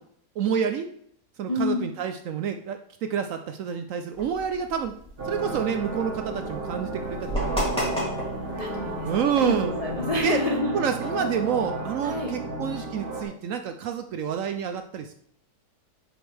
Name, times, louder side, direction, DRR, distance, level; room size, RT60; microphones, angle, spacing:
voice 1, 0.4-0.9 1.4-4.9 5.2-7.9 9.1-9.7 10.2-10.4 10.7-15.1, right 8 dB, 80° right, 7 dB, 0.7 m, -28 dB
voice 2, 1.5-1.8 8.0-10.8 12.0-12.3, left 2 dB, 35° left, -1 dB, 0.6 m, -29 dB
sound 1, 4.1-10.2, equal, 5° left, 3.3 m, -35 dB
sound 2, 5.2-13.2, right 2 dB, 35° right, 1.4 m, -32 dB
7.8 x 6.1 x 3.3 m, 0.66 s
omnidirectional pair, 1.9 m